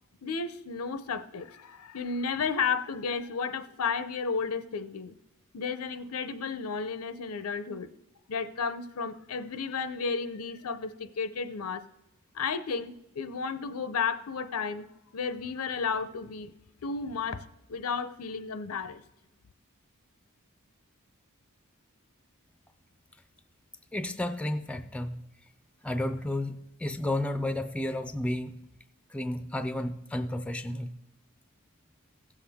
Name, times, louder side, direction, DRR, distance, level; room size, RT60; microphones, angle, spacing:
voice 1, 0.2-5.2 5.5-7.9 8.3-11.8 12.3-14.9 15.1-16.5 16.8-19.0, left 5 dB, 90° left, 0.6 m, -33 dB
voice 2, 23.9-25.2 25.8-28.5 29.1-30.9, left 1 dB, 5° left, 0.4 m, -32 dB
16.0 x 7.1 x 3.5 m
head